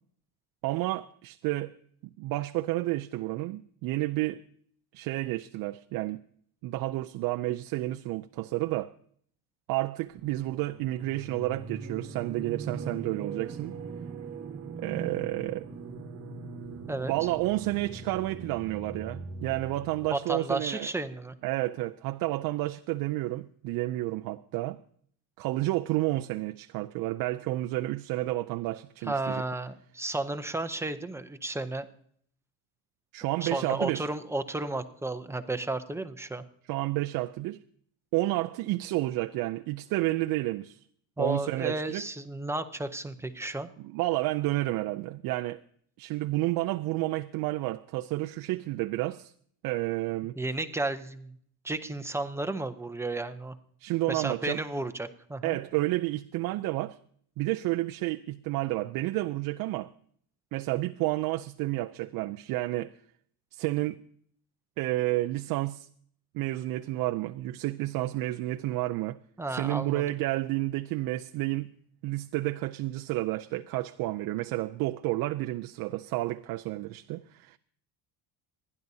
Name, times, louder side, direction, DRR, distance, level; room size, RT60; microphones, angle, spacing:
voice 1, 0.6-1.7 2.2-4.4 4.9-6.2 6.6-8.9 9.7-13.8 14.8-15.7 17.1-20.9 21.4-24.8 25.4-29.4 33.1-34.1 36.7-37.6 38.1-40.8 41.2-42.1 43.8-45.6 46.0-49.3 49.6-50.4 53.8-54.6 55.4-57.0 57.4-59.9 60.5-62.9 63.5-64.0 64.8-65.9 66.3-69.2 69.5-71.7 72.0-77.6, right 18 dB, 60° right, 0.5 m, -30 dB
sound 1, 10.1-20.1, right 4 dB, 40° right, 1.2 m, -41 dB
voice 2, 20.0-21.3 29.0-31.9 33.4-36.4 41.2-43.7 50.4-51.3 51.6-53.6 54.1-55.6 69.4-70.0, right 2 dB, 5° right, 0.6 m, -33 dB
28.0 x 11.0 x 2.7 m
cardioid pair, 145°, 39 cm